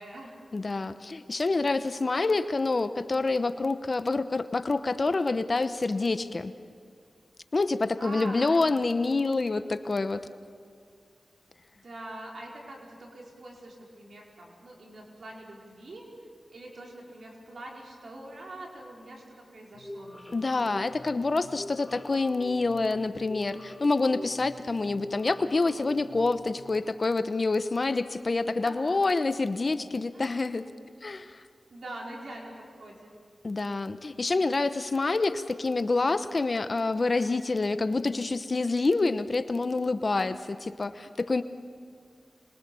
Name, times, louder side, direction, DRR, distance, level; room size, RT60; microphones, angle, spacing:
voice 1, 0.0-0.3 8.0-8.6 11.7-16.1 16.5-20.6 28.6-29.0 30.1-30.5 31.7-32.5 32.8-33.1, right 1 dB, 75° right, -2 dB, 4.9 m, -44 dB
voice 2, 0.5-6.5 7.5-10.3 20.3-30.6 31.0-31.4 33.4-41.4, left 3 dB, 50° left, 11 dB, 0.9 m, -27 dB
sound 1, 19.7-26.6, left 1 dB, 10° left, 4.3 m, -45 dB
26.5 x 22.5 x 7.1 m, 2.2 s
cardioid pair, 55°, 0 cm